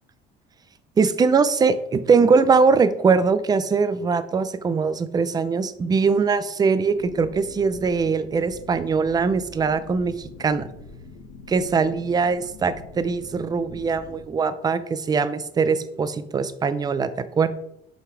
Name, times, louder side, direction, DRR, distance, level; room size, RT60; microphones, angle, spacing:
voice 1, 1.0-10.7 11.5-17.1 17.3-17.5, right 5 dB, 20° right, 12 dB, 0.5 m, -21 dB
sound 1, 6.9-14.2, left 3 dB, 80° left, 1.7 m, -44 dB
5.8 x 5.7 x 4.7 m, 0.77 s
cardioid pair, 130°, 19 cm